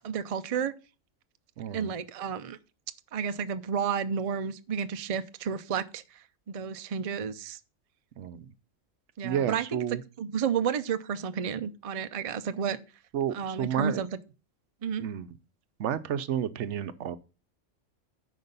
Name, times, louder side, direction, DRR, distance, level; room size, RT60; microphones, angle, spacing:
voice 1, 0.0-0.7 1.7-2.6 3.1-7.6 9.2-9.8 10.2-12.8 13.3-14.1 14.8-15.0, right 7 dB, 50° right, 0.4 m, -31 dB
voice 2, 1.6-1.9 8.2-8.5 9.2-10.0 13.1-14.0 15.0-15.4 15.8-17.2, right 9 dB, 70° right, 0.9 m, -31 dB
9.6 x 5.3 x 5.3 m
omnidirectional pair, 1.3 m